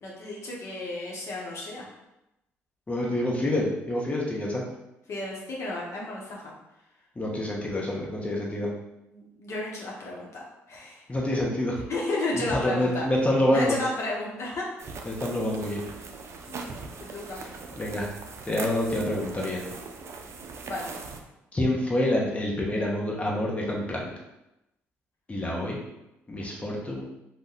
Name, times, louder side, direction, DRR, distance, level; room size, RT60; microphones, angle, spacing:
voice 1, 0.0-1.9 5.1-6.5 9.1-11.0 11.9-13.0 13.5-14.7 16.5-17.4 20.7-20.9, left 2 dB, 55° left, -3 dB, 0.8 m, -33 dB
voice 2, 2.9-4.6 7.2-8.7 11.1-11.8 12.5-13.7 15.0-15.8 17.8-18.1 18.4-19.6 21.5-24.1 25.3-25.8 26.3-27.1, left 1 dB, 20° left, -3 dB, 0.9 m, -27 dB
sound 1, 14.8-21.2, right 4 dB, 50° right, 0.4 m, -40 dB
2.6 x 2.2 x 3.8 m, 0.90 s
supercardioid pair, 60°, 6 cm